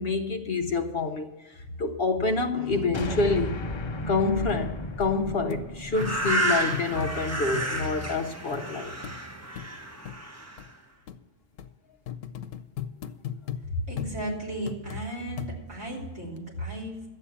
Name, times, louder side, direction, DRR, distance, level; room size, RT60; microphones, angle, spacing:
voice 1, 0.0-3.6 4.1-9.0, left 3 dB, 55° left, 0.9 m, -27 dB
sound 1, 2.9-7.4, left 2 dB, 30° left, 0.7 m, -35 dB
sound 2, 4.5-4.6 5.0-5.1 5.5-5.6 6.0-7.1 7.5-7.7 8.0-8.1 8.5-8.7 9.0-9.2 9.6-9.7 10.0-10.2 10.6-10.7 11.1-11.2 11.6-11.7 12.1-13.6 14.0-14.2 14.7-15.0 15.4-15.8 16.4-16.5, left 10 dB, 90° left, 1.0 m, -37 dB
sound 3, 5.9-10.6, right 2 dB, 15° right, 1.0 m, -31 dB
voice 2, 13.7-17.0, equal, 60° right, 3.7 m, -34 dB
12.0 x 8.7 x 7.0 m
omnidirectional pair, 1.3 m